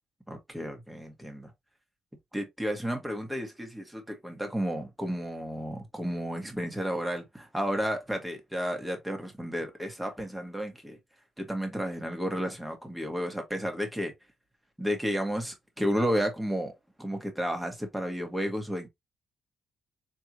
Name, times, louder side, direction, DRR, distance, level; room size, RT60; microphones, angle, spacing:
voice 1, 0.3-1.5 2.3-11.0 11.4-14.1 14.8-16.7 17.0-18.9, equal, 5° right, 1.7 m, -32 dB
4.6 x 3.4 x 2.9 m
cardioid pair, 90°, 0 cm